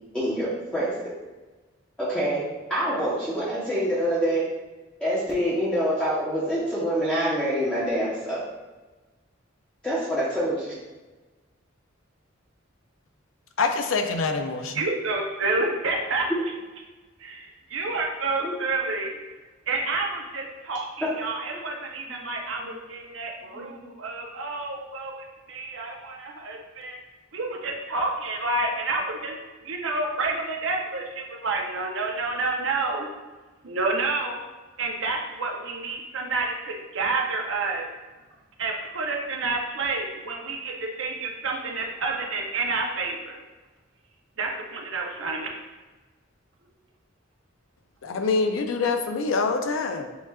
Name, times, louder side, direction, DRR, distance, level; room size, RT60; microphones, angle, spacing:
voice 1, 0.1-1.1 2.0-2.4 2.7-4.5 5.0-8.4 9.8-10.7 18.4-18.5 21.0-21.1 21.5-21.6 23.5-23.7, equal, 5° left, -10 dB, 0.8 m, -26 dB
voice 2, 13.6-14.9 48.0-50.1, left 4 dB, 75° left, 5 dB, 0.5 m, -25 dB
voice 3, 14.7-16.3 17.2-19.2 19.7-27.0 27.3-29.3 29.6-33.1 33.6-34.4 34.8-37.9 38.6-43.4 44.4-45.6, right 3 dB, 70° right, 1 dB, 0.7 m, -29 dB
7.0 x 2.4 x 2.3 m, 1.2 s
head